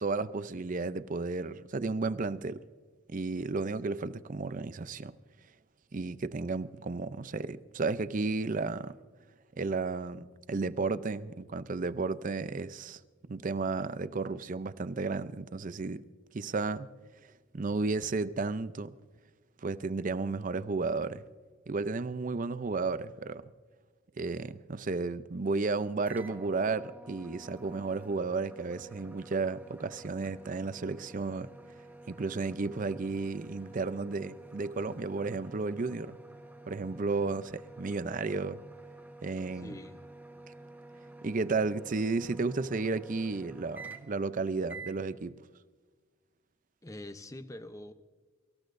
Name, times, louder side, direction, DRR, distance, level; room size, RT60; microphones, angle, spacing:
voice 1, 0.0-2.6 3.1-5.1 5.9-9.0 9.6-13.0 13.3-16.0 16.3-16.9 17.5-18.9 19.6-21.2 21.7-23.4 24.2-31.5 32.1-36.2 36.7-38.6 39.2-39.7 41.2-45.3, right 3 dB, 40° right, 0.5 m, -33 dB
sound 1, 26.0-44.3 44.7-45.0, right 2 dB, 10° right, 1.2 m, -50 dB
voice 2, 39.5-40.0 46.8-47.9, left 1 dB, 15° left, 0.7 m, -44 dB
24.5 x 14.5 x 2.6 m
head